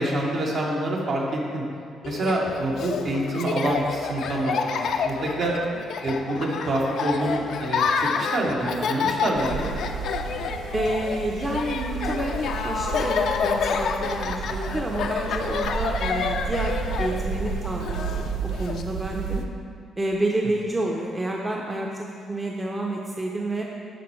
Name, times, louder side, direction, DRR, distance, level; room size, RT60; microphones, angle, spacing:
voice 1, 0.0-1.6 2.0-5.5 6.0-9.7, right 1 dB, 65° right, -3 dB, 1.6 m, -26 dB
Laughter, 2.0-18.8, left 5 dB, 70° left, 0.4 m, -29 dB
sound 1, 9.4-19.5, right 5 dB, 85° right, 0.4 m, -32 dB
voice 2, 10.7-19.4 20.0-23.6, right 1 dB, 20° right, -1 dB, 0.7 m, -29 dB
12.0 x 4.4 x 3.2 m, 2.3 s
cardioid pair, 90°, 0 cm